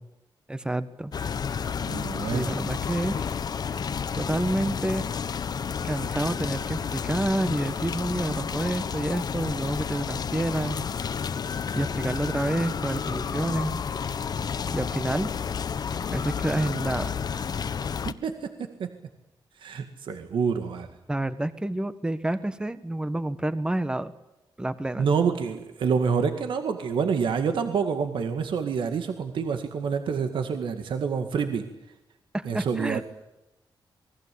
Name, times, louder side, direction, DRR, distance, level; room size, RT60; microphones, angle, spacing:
voice 1, 0.5-1.1 2.2-3.3 3.7-3.8 4.2-5.1 5.9-10.9 11.7-13.8 14.7-15.3 16.1-17.1 21.1-24.1 24.6-25.1 32.3-33.0, right 1 dB, 10° right, 12 dB, 1.3 m, -29 dB
sound 1, 1.1-18.1, left 6 dB, 55° left, 1.1 m, -31 dB
voice 2, 1.9-2.5 18.1-18.9 19.6-20.9 25.0-31.7 32.5-33.0, right 6 dB, 75° right, 7 dB, 2.1 m, -27 dB
28.0 x 20.5 x 8.6 m, 0.94 s
wide cardioid pair, 140°, 8 cm